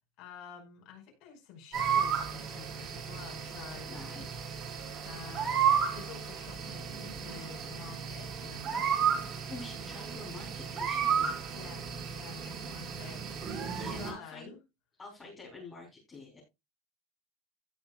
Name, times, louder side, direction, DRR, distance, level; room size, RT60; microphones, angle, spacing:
voice 1, 0.2-3.9 5.1-5.6 5.9-9.3 11.5-14.6, left 7 dB, 45° left, 5.2 m, -50 dB
sound 1, 1.7-14.1, right 7 dB, 35° right, 3.4 m, -33 dB
voice 2, 3.9-4.7 9.3-11.4 13.7-14.5 15.0-16.4, left 2 dB, 15° left, 3.5 m, -47 dB
16.5 x 5.7 x 2.3 m
cardioid pair, 175°, 0 cm